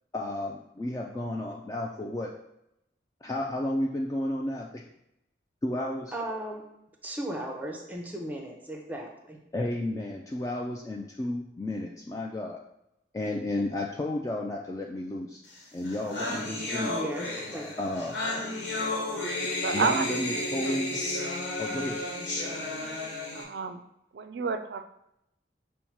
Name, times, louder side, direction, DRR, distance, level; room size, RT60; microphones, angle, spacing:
voice 1, 0.1-2.3 3.2-4.8 5.6-6.1 9.5-12.6 13.1-15.4 15.7-17.1 17.8-18.1 19.7-21.0 21.6-22.0, left 1 dB, 20° left, -1 dB, 0.3 m, -32 dB
voice 2, 6.1-6.6 7.0-9.4 16.9-17.7, right 1 dB, 10° right, 1 dB, 0.7 m, -36 dB
sound 1, 15.6-15.7 15.8-23.4, left 2 dB, 80° left, 1.0 m, -32 dB
voice 3, 19.6-20.1 20.6-20.7 21.2-21.3 23.3-23.8 24.1-24.8, right 5 dB, 65° right, 10 dB, 0.4 m, -30 dB
5.4 x 2.1 x 4.5 m, 0.81 s
head